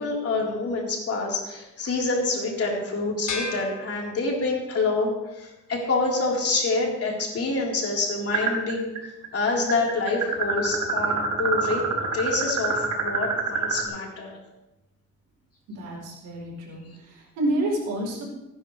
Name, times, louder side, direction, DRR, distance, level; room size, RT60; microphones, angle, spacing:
voice 1, 0.0-8.9 9.3-14.4, left 3 dB, 50° left, -2 dB, 4.0 m, -27 dB
sound 1, 3.3-4.8, left 4 dB, 85° left, 2.2 m, -35 dB
sound 2, 8.3-9.0 9.2-13.8, right 5 dB, 75° right, 4.8 m, -25 dB
voice 2, 15.7-18.2, right 1 dB, 90° right, -1 dB, 4.4 m, -29 dB
19.0 x 10.0 x 3.3 m, 0.98 s
cardioid pair, 90°, 30 cm